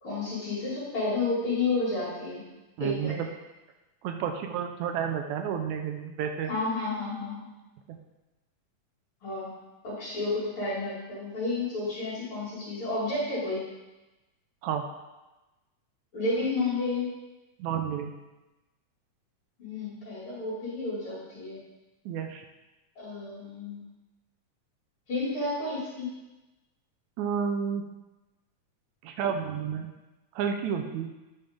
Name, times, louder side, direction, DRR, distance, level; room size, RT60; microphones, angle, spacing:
voice 1, 0.0-2.4 2.8-3.2 6.5-7.5 9.2-9.5 9.8-13.6 16.1-17.1 19.6-21.6 23.0-23.8 25.1-26.1, left 3 dB, 45° left, -7 dB, 3.2 m, -31 dB
voice 2, 2.8-3.3 4.0-6.5 7.9-8.0 14.6-14.9 17.6-18.2 22.1-22.4 27.2-27.9 29.0-29.9 30.4-31.1, right 7 dB, 80° right, 5 dB, 1.9 m, -31 dB
8.8 x 5.3 x 3.6 m, 1.1 s
omnidirectional pair, 3.4 m